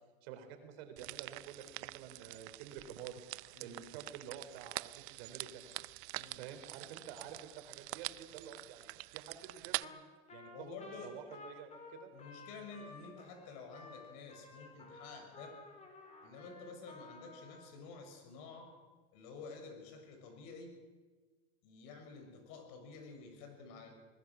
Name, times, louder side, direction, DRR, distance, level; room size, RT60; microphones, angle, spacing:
voice 1, 0.2-3.2 3.6-5.6 6.3-10.0 10.3-10.8 11.0-12.1, right 8 dB, 65° right, 7 dB, 3.9 m, -50 dB
sound 1, 1.0-9.8, right 23 dB, 45° right, 0.5 m, -45 dB
voice 2, 6.1-6.5 10.4-11.2 12.1-15.6 16.2-18.8 19.1-20.8 21.6-23.9, left 4 dB, 55° left, 4 dB, 6.5 m, -51 dB
Trumpet, 9.8-10.0 10.3-17.7, left 3 dB, 20° left, 4.4 m, -54 dB
23.0 x 20.0 x 6.3 m, 1.4 s
supercardioid pair, 125°, 32 cm